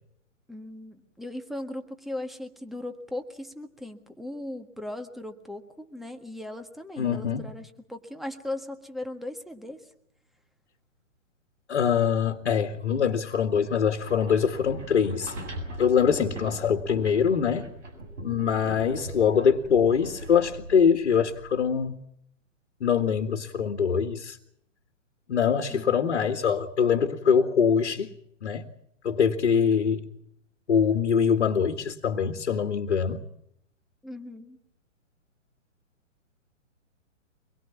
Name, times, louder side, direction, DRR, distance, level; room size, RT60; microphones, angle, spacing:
voice 1, 0.5-9.9 25.7-26.0 34.0-34.6, left 1 dB, ahead, 6 dB, 1.6 m, -38 dB
voice 2, 7.0-7.4 11.7-15.3 15.8-17.7 18.2-22.0 22.8-24.4 25.3-28.1 28.4-28.6 29.0-30.1 30.7-33.2, left 7 dB, 55° left, 8 dB, 1.9 m, -23 dB
sound 1, 13.9-21.9, right 1 dB, 65° right, 7.8 m, -41 dB
25.0 x 21.5 x 7.3 m, 0.75 s
figure-of-eight pair, 125°, 39 cm